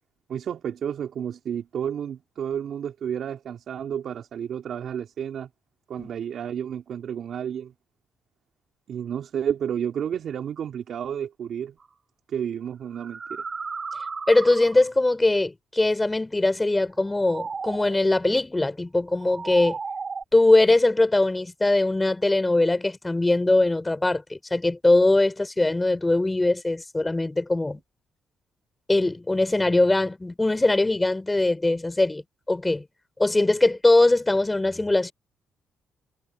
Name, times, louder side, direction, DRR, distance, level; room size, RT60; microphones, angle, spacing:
voice 1, 0.3-5.5 5.9-7.7 8.9-11.8 12.3-13.4, right 8 dB, 65° right, 3.8 m, -31 dB
sound 1, 11.8-11.9 12.7-15.1 17.0-18.1 19.1-20.2, right 4 dB, 35° right, 3.9 m, -35 dB
voice 2, 14.3-19.8 20.3-27.8 28.9-32.2 32.5-32.8 33.2-35.1, left 2 dB, 15° left, 4.1 m, -21 dB
cardioid pair, 90°, 0 cm